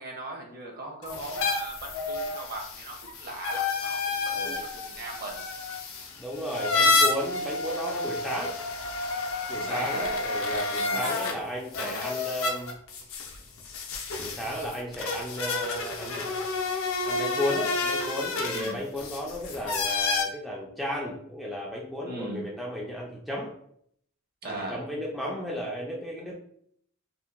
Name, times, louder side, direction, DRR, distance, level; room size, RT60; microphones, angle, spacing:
voice 1, 0.0-5.4 9.5-10.1 10.7-11.2 18.4-18.8 22.0-22.5 24.4-24.8, right 2 dB, 45° right, 0 dB, 0.7 m, -39 dB
sound 1, 1.0-11.3 11.7-20.2, left 3 dB, 65° left, 0.5 m, -30 dB
voice 2, 4.3-4.6 6.2-8.6 9.5-12.8 14.2-16.4 17.0-23.5 24.4-26.3, equal, ahead, -4 dB, 0.3 m, -34 dB
2.7 x 2.2 x 2.4 m, 0.67 s
head